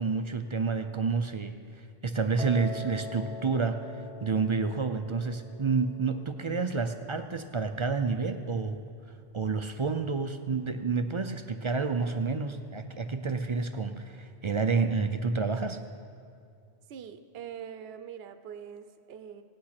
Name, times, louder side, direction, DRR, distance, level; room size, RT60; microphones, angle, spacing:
voice 1, 0.0-1.6 2.0-3.8 4.2-8.8 9.3-15.8, right 4 dB, 50° right, 8 dB, 0.3 m, -29 dB
Piano, 2.4-8.5, left 2 dB, 5° right, 0.6 m, -44 dB
voice 2, 16.9-19.4, right 8 dB, 70° right, 9 dB, 0.8 m, -43 dB
17.5 x 8.6 x 5.9 m, 2.3 s
omnidirectional pair, 1.1 m